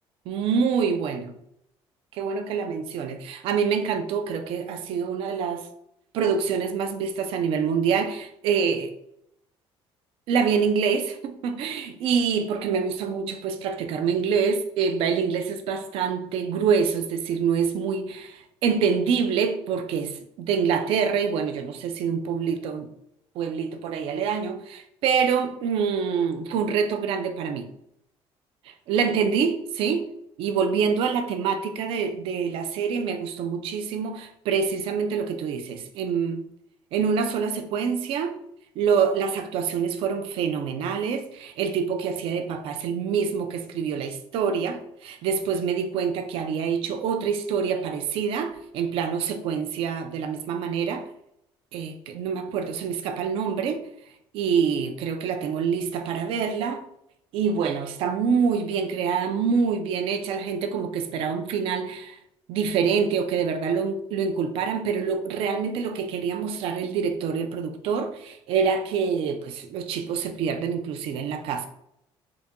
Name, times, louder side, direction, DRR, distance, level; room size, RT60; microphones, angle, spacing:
voice 1, 0.3-1.3 2.1-5.7 6.1-8.9 10.3-22.9 23.4-27.7 28.7-30.1 30.4-36.5 36.9-38.4 38.8-51.1 51.7-53.8 54.3-56.8 57.3-62.2 62.5-71.7, right 6 dB, 65° right, 0.5 m, -26 dB
3.9 x 2.2 x 3.6 m
cardioid pair, 170°, 10 cm